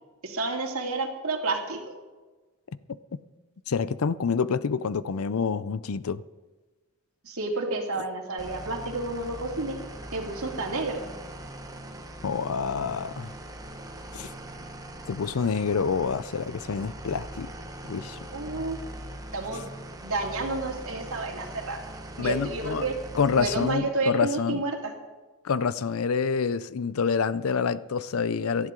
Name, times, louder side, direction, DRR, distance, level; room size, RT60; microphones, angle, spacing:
voice 1, 0.2-1.9 7.2-9.8 10.1-11.1 18.3-18.8 19.3-19.7 20.0-21.8 22.2-22.9 23.4-24.9, right 3 dB, 75° right, 2.5 m, -30 dB
voice 2, 3.7-6.2 12.2-13.3 14.1-14.3 15.1-17.5 17.8-18.2 19.5-19.6 22.2-22.9 23.1-24.6 25.4-28.7, left 5 dB, 75° left, 0.5 m, -27 dB
sound 1, 8.4-23.7, right 1 dB, 15° right, 1.1 m, -41 dB
18.0 x 12.5 x 3.8 m
head